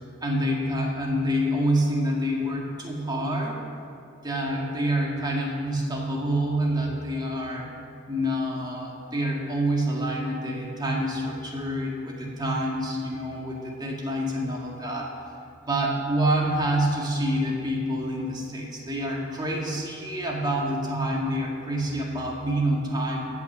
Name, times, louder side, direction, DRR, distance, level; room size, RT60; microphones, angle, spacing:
voice 1, 0.2-3.6 4.2-7.7 8.1-15.1 15.7-23.3, right 1 dB, 20° right, -2 dB, 1.9 m, -27 dB
15.5 x 5.9 x 7.3 m, 2.6 s
head